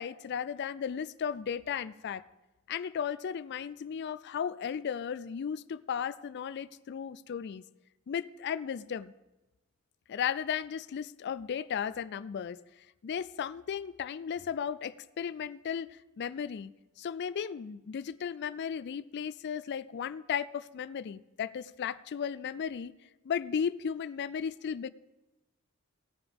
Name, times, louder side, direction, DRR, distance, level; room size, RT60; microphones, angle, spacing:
voice 1, 0.0-2.2 2.7-7.6 8.1-9.1 10.1-12.6 13.0-16.7 17.0-22.9 23.2-24.9, left 7 dB, 50° left, 16 dB, 0.3 m, -35 dB
17.0 x 9.5 x 3.5 m, 1.0 s
head